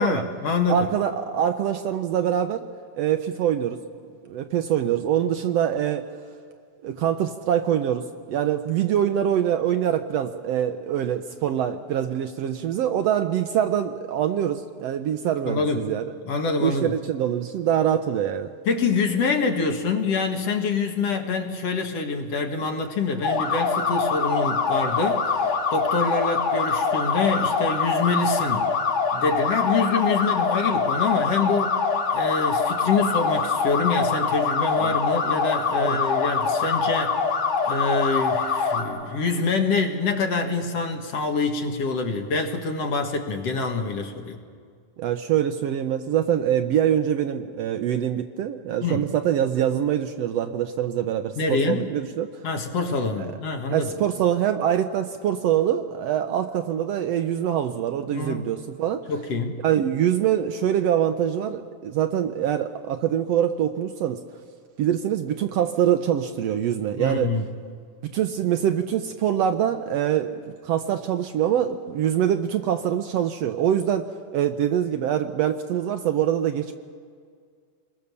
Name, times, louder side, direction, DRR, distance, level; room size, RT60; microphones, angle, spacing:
voice 1, 0.0-0.9 15.5-15.9 16.3-16.9 18.7-28.7 29.1-31.8 32.1-37.2 37.6-44.4 48.8-49.1 51.4-51.8 52.4-53.9 58.1-58.5 59.1-59.6 67.0-67.4, left 4 dB, 60° left, 3 dB, 2.6 m, -25 dB
voice 2, 0.7-2.6 2.9-3.8 4.3-6.1 6.8-16.0 16.6-18.5 34.8-35.0 35.8-36.0 45.0-52.4 53.7-59.0 59.6-64.2 64.8-67.3 68.1-70.4 70.6-74.1 74.3-76.7, right 10 dB, 70° right, 8 dB, 1.7 m, -24 dB
sound 1, 23.2-38.8, left 5 dB, 85° left, 3.8 m, -24 dB
28.5 x 21.5 x 6.9 m, 2.1 s
omnidirectional pair, 3.4 m